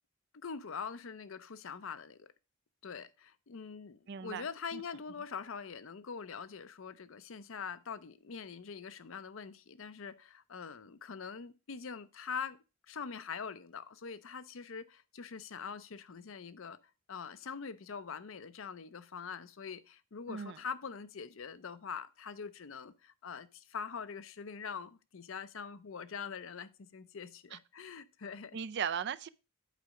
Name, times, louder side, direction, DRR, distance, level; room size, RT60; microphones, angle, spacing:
voice 1, 0.3-2.3 2.8-12.6 12.9-16.8 17.1-28.6, left 6 dB, 70° left, 0.6 m, -44 dB
voice 2, 4.1-4.4 4.7-4.8 20.3-20.6 27.5-27.6 28.5-29.3, right 7 dB, 55° right, 0.4 m, -37 dB
8.3 x 4.8 x 5.1 m
head